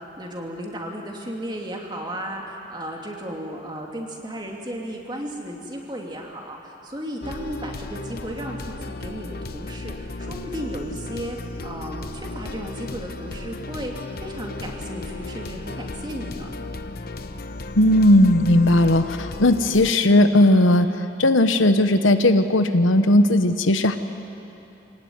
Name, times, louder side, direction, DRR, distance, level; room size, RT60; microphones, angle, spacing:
voice 1, 0.0-16.5, equal, 25° right, 0 dB, 2.7 m, -34 dB
sound 1, 7.2-19.9, left 2 dB, 50° left, 0.9 m, -35 dB
voice 2, 17.8-20.9 21.2-24.0, left 1 dB, 85° left, 9 dB, 1.1 m, -17 dB
26.5 x 18.0 x 9.5 m, 2.9 s
head